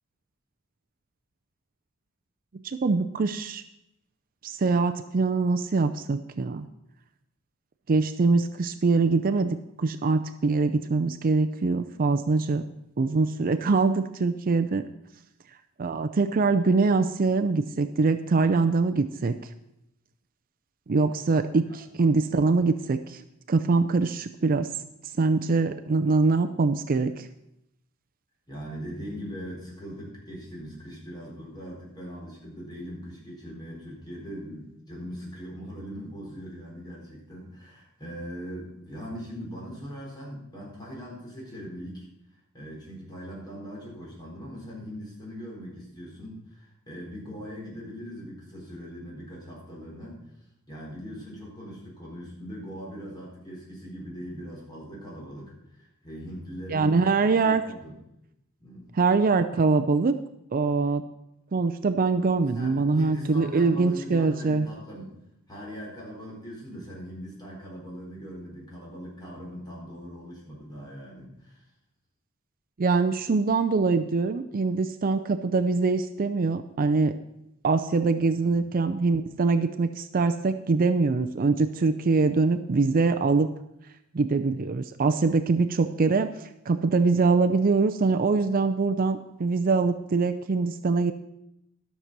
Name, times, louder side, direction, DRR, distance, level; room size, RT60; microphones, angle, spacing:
voice 1, 2.6-3.6 4.4-6.7 7.9-12.6 13.0-14.9 15.8-19.3 20.9-23.2 23.5-24.7 25.2-27.3 56.7-57.6 59.0-60.1 60.5-61.0 61.5-64.7 72.8-77.1 77.6-83.5 84.1-91.1, right 4 dB, 45° right, 9 dB, 0.5 m, -23 dB
voice 2, 28.5-42.1 42.5-50.2 50.7-58.0 58.6-58.9 62.5-65.1 65.5-71.6 78.4-78.7, equal, 20° left, -3 dB, 4.1 m, -40 dB
13.0 x 6.7 x 6.0 m, 0.84 s
head